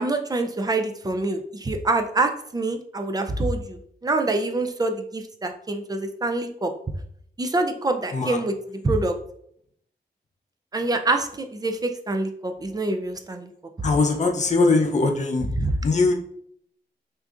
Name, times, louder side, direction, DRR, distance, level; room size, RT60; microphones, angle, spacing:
voice 1, 0.0-6.7 7.4-9.2 10.7-13.5 15.5-15.7, right 2 dB, 20° right, 6 dB, 0.4 m, -26 dB
voice 2, 13.8-15.5 15.8-16.1, left 3 dB, 45° left, 2 dB, 0.6 m, -21 dB
6.1 x 2.6 x 2.4 m, 0.68 s
wide cardioid pair, 170°, 17 cm